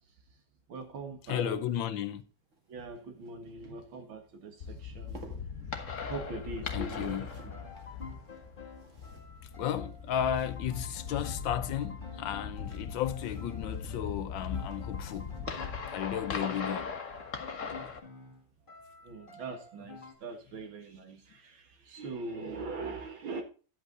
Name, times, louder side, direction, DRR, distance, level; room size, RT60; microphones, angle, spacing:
voice 1, 0.7-1.6 2.7-5.3 6.0-7.6 19.0-23.4, right 3 dB, 80° right, 2.4 m, -42 dB
voice 2, 1.3-2.2 6.7-7.3 9.6-15.3 15.9-16.9, left 9 dB, 75° left, 1.5 m, -34 dB
sound 1, 2.3-11.1 12.2-16.2 17.8-18.1 18.4-18.5, right 3 dB, 40° right, 2.0 m, -57 dB
sound 2, 4.6-18.0, left 6 dB, 45° left, 1.4 m, -39 dB
sound 3, 7.2-20.1, left 4 dB, 25° left, 1.7 m, -50 dB
10.5 x 8.2 x 3.8 m
omnidirectional pair, 2.1 m